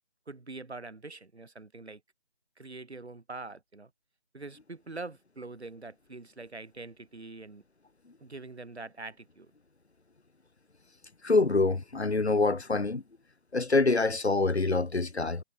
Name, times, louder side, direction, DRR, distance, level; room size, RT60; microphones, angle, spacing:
voice 1, 0.3-2.0 2.6-3.9 4.3-7.6 8.2-9.5, right 3 dB, 90° right, 4.4 m, -44 dB
voice 2, 11.2-13.0 13.5-15.4, left 3 dB, 85° left, 3.5 m, -25 dB
figure-of-eight pair, 175°, 32 cm